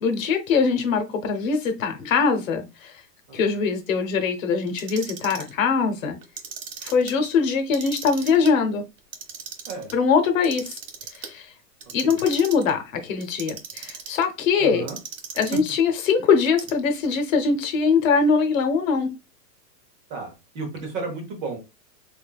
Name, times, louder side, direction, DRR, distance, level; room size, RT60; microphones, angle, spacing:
voice 1, 0.0-3.0 3.3-6.2 6.8-8.8 9.9-10.8 11.1-11.5 11.9-14.8 15.4-19.1, left 5 dB, 55° left, 1.0 m, -22 dB
Clock, 4.7-5.5 6.2-7.1 7.6-8.5 9.0-9.9 10.4-11.3 11.8-12.7 13.2-14.2 14.9-15.8 16.4-17.1, right 7 dB, 80° right, 1.2 m, -37 dB
voice 2, 14.6-15.0 20.1-21.6, right 4 dB, 25° right, 0.9 m, -33 dB
4.2 x 3.5 x 2.3 m
hypercardioid pair, 160°, 48 cm